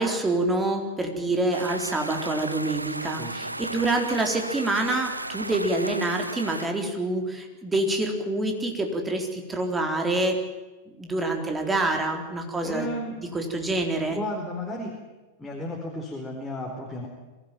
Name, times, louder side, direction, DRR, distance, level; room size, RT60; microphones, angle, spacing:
voice 1, 0.0-10.4 11.0-12.9 13.3-14.2, right 2 dB, 15° right, 3 dB, 3.9 m, -26 dB
sound 1, 1.5-6.7, right 1 dB, 85° right, 0.7 m, -35 dB
voice 2, 3.2-3.5 12.6-13.4 14.1-14.9 15.4-17.1, left 1 dB, 10° left, -2 dB, 4.3 m, -33 dB
23.5 x 16.5 x 9.2 m, 1.2 s
figure-of-eight pair, 90°, 0 cm